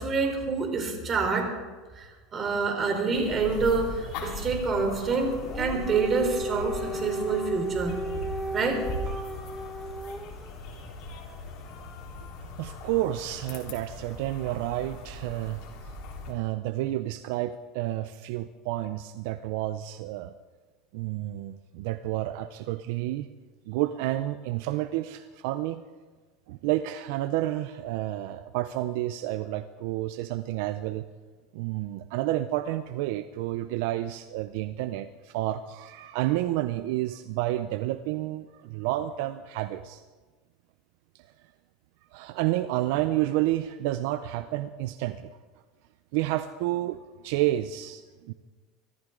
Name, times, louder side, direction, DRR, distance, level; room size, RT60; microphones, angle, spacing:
voice 1, 0.0-1.5 1.9-8.0 8.5-9.3, right 4 dB, 30° right, 4 dB, 3.8 m, -27 dB
sound 1, 3.1-16.3, left 2 dB, 60° left, 4.0 m, -39 dB
Dog, 5.3-10.5, right 1 dB, ahead, 0.6 m, -35 dB
voice 2, 12.6-15.9 16.3-20.3 20.9-23.3 23.7-25.8 26.5-31.0 31.5-40.0 41.1-41.3 42.1-45.3 46.1-48.3, right 15 dB, 70° right, 11 dB, 0.6 m, -30 dB
23.5 x 14.0 x 3.9 m, 1.4 s
supercardioid pair, 125°, 0 cm